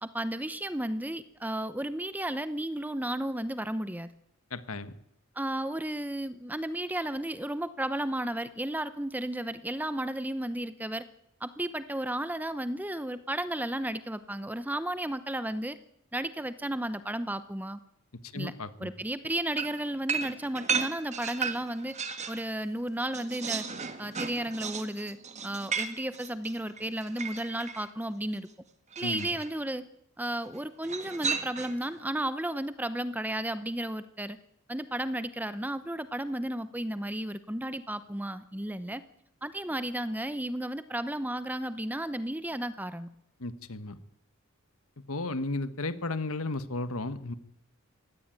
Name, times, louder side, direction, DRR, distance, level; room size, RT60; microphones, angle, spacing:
voice 1, 0.0-4.1 5.4-11.1 11.4-15.8 16.1-17.8 18.3-18.5 18.8-22.0 22.3-23.6 24.0-25.2 25.4-28.5 29.0-29.9 30.2-34.4 34.7-39.0 39.4-43.1, right 1 dB, 10° right, 13 dB, 0.8 m, -33 dB
voice 2, 4.5-4.9 18.3-18.9 29.0-29.3 43.4-44.0 45.1-47.3, left 2 dB, 75° left, 12 dB, 1.4 m, -34 dB
sound 1, 19.6-22.5 22.8-27.9 28.9-29.5 30.8-31.9, right 5 dB, 30° right, 1.6 m, -35 dB
23.0 x 17.0 x 9.0 m, 0.79 s
head